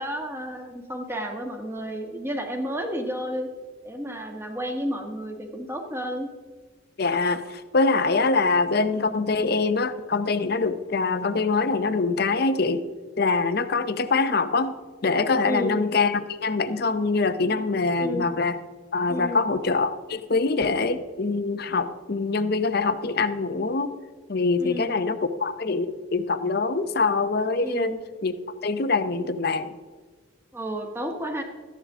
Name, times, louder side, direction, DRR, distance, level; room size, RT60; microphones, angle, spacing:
voice 1, 0.0-3.5 3.8-6.3 15.4-15.8 18.0-18.3 19.1-19.4 24.6-25.0 27.6-28.0 30.5-31.4, equal, 10° right, 3 dB, 1.3 m, -31 dB
voice 2, 7.0-7.4 7.7-12.8 13.2-14.7 15.0-18.6 18.9-23.9 24.3-27.9 28.2-28.3 28.6-29.7, left 3 dB, 50° left, 11 dB, 0.7 m, -24 dB
13.5 x 10.5 x 3.7 m, 1.5 s
head